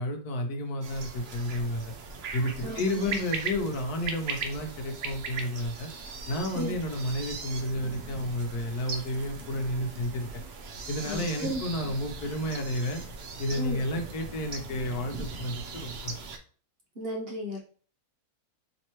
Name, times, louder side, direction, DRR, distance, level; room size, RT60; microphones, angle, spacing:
voice 1, 0.0-1.9 2.3-5.9 6.3-10.4 10.9-13.0 13.4-16.1, left 1 dB, 75° left, 4 dB, 1.3 m, -31 dB
sound 1, 0.8-16.4, right 4 dB, 60° right, 0.7 m, -39 dB
voice 2, 2.6-3.1 6.5-6.7 11.0-11.6 13.5-13.8 16.9-17.6, equal, 45° right, -2 dB, 1.0 m, -34 dB
4.3 x 3.3 x 3.0 m, 0.42 s
omnidirectional pair, 1.7 m